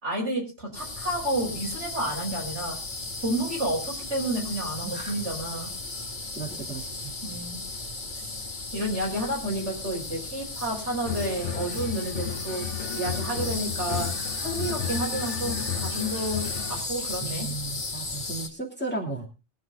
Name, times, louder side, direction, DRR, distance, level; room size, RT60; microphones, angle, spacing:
voice 1, 0.0-2.8 3.2-5.7 7.2-7.6 8.2-8.3 8.7-12.7 12.9-17.5, right 1 dB, 70° right, -1 dB, 5.3 m, -30 dB
sound 1, 0.7-18.5, left 3 dB, 40° left, 1.7 m, -35 dB
voice 2, 4.8-5.1 6.4-6.8 17.2-19.3, right 3 dB, 10° left, -1 dB, 3.0 m, -34 dB
sound 2, 11.0-16.8, left 9 dB, 75° left, 1.3 m, -34 dB
22.0 x 7.6 x 4.0 m, 0.30 s
omnidirectional pair, 1.2 m